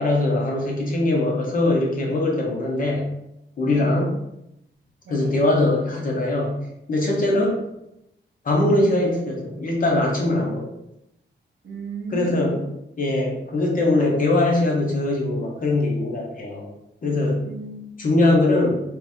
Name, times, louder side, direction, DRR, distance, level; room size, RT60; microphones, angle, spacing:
voice 1, 0.0-3.1 3.6-4.1 5.1-6.6 6.9-7.6 8.4-10.7 12.1-12.6 13.0-16.7 17.0-17.4 18.0-18.8, left 2 dB, 45° left, -1 dB, 0.8 m, -21 dB
voice 2, 5.0-5.4 11.6-12.8 17.4-18.3, right 2 dB, 70° right, -1 dB, 0.9 m, -36 dB
3.0 x 2.6 x 3.5 m, 0.83 s
wide cardioid pair, 180°, 20 cm